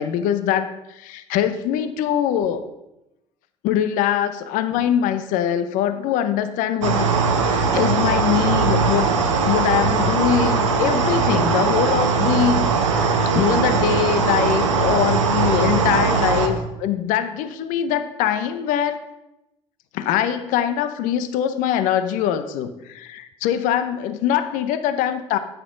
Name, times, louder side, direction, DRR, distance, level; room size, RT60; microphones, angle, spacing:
voice 1, 0.0-2.6 3.6-9.2 9.4-19.0 19.9-25.4, left 10 dB, 60° left, 11 dB, 0.7 m, -23 dB
sound 1, 6.8-16.5, right 5 dB, 85° right, 1.0 m, -20 dB
9.8 x 8.0 x 3.8 m, 0.92 s
hypercardioid pair, 70°, 15 cm